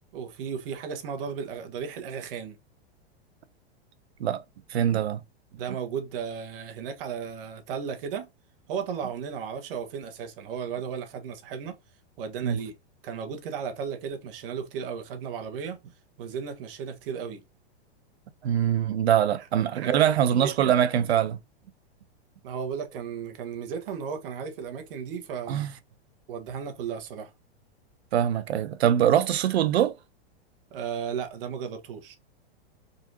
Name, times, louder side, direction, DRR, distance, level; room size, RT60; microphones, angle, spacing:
voice 1, 0.1-2.6 5.5-8.3 8.7-11.8 12.2-12.7 13.0-15.8 16.2-17.4 19.4-19.5 19.7-20.0 20.3-20.7 22.4-25.7 26.3-27.3 30.7-32.2, right 7 dB, 60° right, 1.4 m, -35 dB
voice 2, 4.7-5.2 12.4-12.6 18.4-21.4 25.5-25.7 28.1-30.0, right 10 dB, 85° right, 0.8 m, -23 dB
4.7 x 4.0 x 2.8 m
hypercardioid pair, 135°, 31 cm